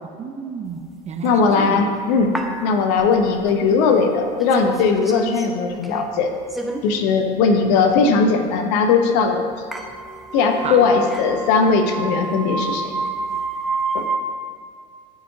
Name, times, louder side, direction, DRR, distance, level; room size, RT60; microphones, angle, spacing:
voice 1, 0.0-1.9 3.0-3.1 10.6-10.9, right 6 dB, 30° right, 5 dB, 0.7 m, -31 dB
voice 2, 1.2-6.3 6.8-9.5 10.3-12.9 13.9-14.1, left 4 dB, 70° left, 5 dB, 0.9 m, -18 dB
sound 1, 1.3-1.4 2.2-3.5 3.8-3.9 4.4-5.5 5.7-6.1 6.5-6.9 7.3-7.4 7.7-7.8 8.1-8.3 9.2-9.3 9.5-14.2, right 3 dB, ahead, 0.8 m, -29 dB
12.5 x 4.8 x 2.8 m, 2.2 s
hypercardioid pair, 85°, 21 cm